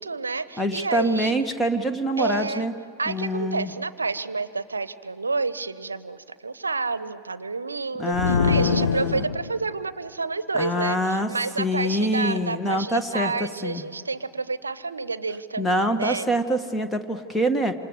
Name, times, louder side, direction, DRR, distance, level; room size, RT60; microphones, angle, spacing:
voice 1, 0.0-1.3 2.2-2.7 3.0-16.3, right 4 dB, 75° right, 16 dB, 0.8 m, -29 dB
voice 2, 0.6-2.7 3.1-3.7 8.0-9.3 10.5-11.3 11.6-13.3 13.6-13.8 15.6-17.7, equal, 10° left, 8 dB, 1.6 m, -25 dB
sound 1, 8.1-9.7, left 6 dB, 70° left, 0.6 m, -24 dB
27.5 x 26.5 x 8.0 m, 2.7 s
figure-of-eight pair, 90°, 0 cm